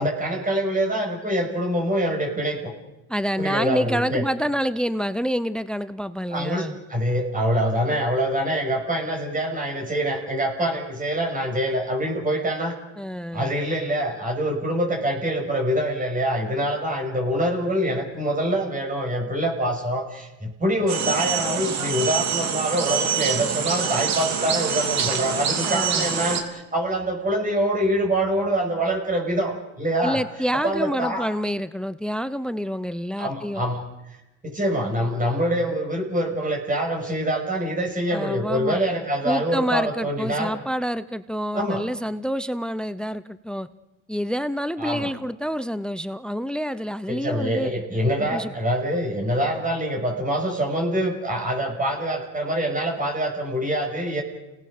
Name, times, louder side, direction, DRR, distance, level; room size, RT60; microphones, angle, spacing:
voice 1, 0.0-2.7 3.4-4.2 6.3-12.8 13.3-30.2 30.6-31.3 33.2-33.8 34.4-40.5 41.5-41.8 44.8-45.1 47.1-54.2, right 1 dB, 25° right, 1 dB, 6.7 m, -25 dB
voice 2, 3.1-6.8 13.0-13.5 25.7-26.1 30.0-33.6 38.1-38.8 39.2-43.7 44.1-47.7 48.2-48.5, equal, ahead, 16 dB, 0.7 m, -27 dB
sound 1, 20.9-26.4, right 7 dB, 50° right, 3.1 m, -25 dB
30.0 x 18.5 x 6.7 m, 0.98 s
supercardioid pair, 90°, 34 cm